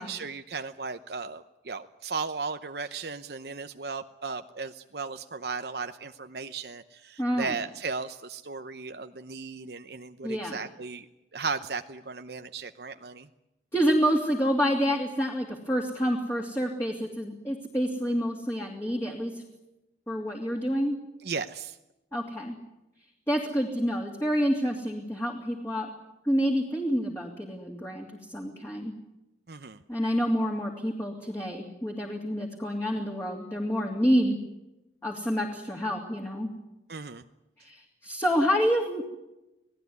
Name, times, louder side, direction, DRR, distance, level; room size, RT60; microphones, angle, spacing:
voice 1, 0.0-11.1 11.3-13.3 21.2-21.8 29.5-29.8 36.9-37.2, right 4 dB, 60° right, 8 dB, 0.8 m, -36 dB
voice 2, 7.2-7.5 10.2-10.6 13.7-19.4 20.1-21.0 22.1-22.6 23.3-25.9 26.2-28.9 29.9-34.4 35.0-36.5 37.6-39.0, equal, 15° left, 0 dB, 2.8 m, -28 dB
27.5 x 18.0 x 9.5 m, 0.96 s
head